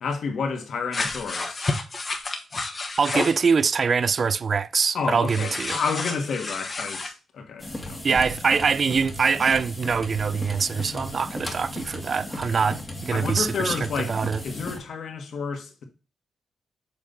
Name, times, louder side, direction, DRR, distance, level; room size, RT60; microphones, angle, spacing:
voice 1, 0.0-1.7 4.9-8.0 10.8-11.0 13.1-15.8, left 5 dB, 70° left, 1.6 m, -30 dB
sound 1, 0.9-3.4 5.3-7.1, left 3 dB, 35° left, 1.3 m, -30 dB
voice 2, 3.0-5.8 8.0-13.8 14.1-14.4, right 5 dB, 45° right, 0.3 m, -23 dB
sound 2, 7.6-14.8, left 1 dB, 15° left, 1.7 m, -36 dB
7.4 x 3.6 x 3.9 m
cardioid pair, 90°, 0 cm